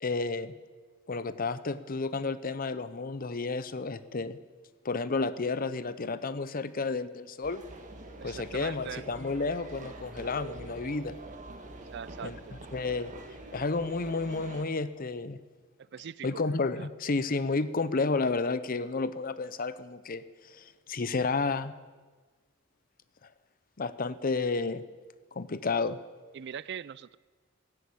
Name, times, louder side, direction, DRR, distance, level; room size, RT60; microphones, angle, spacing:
voice 1, 0.0-0.5 1.1-4.4 4.8-7.6 8.2-11.1 12.2-12.4 12.7-13.1 13.5-15.4 16.2-20.2 20.5-21.7 23.8-24.8 25.3-26.0, left 3 dB, 45° left, 14 dB, 0.7 m, -31 dB
sound 1, 7.4-14.6, right 2 dB, 40° right, 1.7 m, -45 dB
voice 2, 8.2-9.1 11.9-12.5 15.8-16.4 16.8-16.9 26.3-27.2, right 8 dB, 55° right, 20 dB, 0.4 m, -41 dB
16.0 x 9.7 x 8.7 m, 1.4 s
head